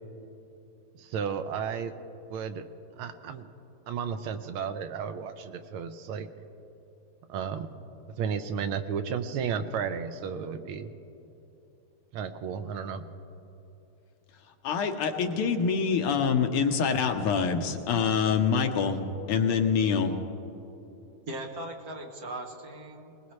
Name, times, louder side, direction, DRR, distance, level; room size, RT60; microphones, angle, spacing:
voice 1, 0.9-1.9 2.3-2.6 3.0-3.5 3.9-6.3 7.3-7.7 8.1-10.9 12.1-13.1, right 7 dB, 80° right, 9 dB, 1.6 m, -33 dB
voice 2, 14.4-19.0 19.3-20.2, left 6 dB, 85° left, 5 dB, 1.9 m, -26 dB
voice 3, 21.3-23.3, right 1 dB, 50° right, 3 dB, 1.4 m, -39 dB
20.5 x 20.5 x 3.2 m, 3.0 s
omnidirectional pair, 2.4 m